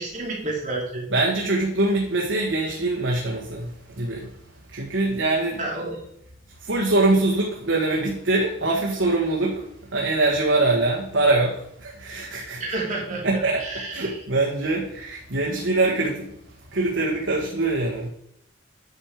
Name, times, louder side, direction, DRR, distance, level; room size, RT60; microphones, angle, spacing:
voice 1, 0.0-1.1 5.6-6.1 12.6-14.2, right 2 dB, 40° right, -3 dB, 3.2 m, -30 dB
voice 2, 1.1-4.3 4.7-5.6 6.6-9.6 9.9-12.6 13.2-13.6 13.9-16.3 16.7-18.1, right 2 dB, 75° right, -2 dB, 1.7 m, -23 dB
10.0 x 6.6 x 5.0 m, 0.73 s
head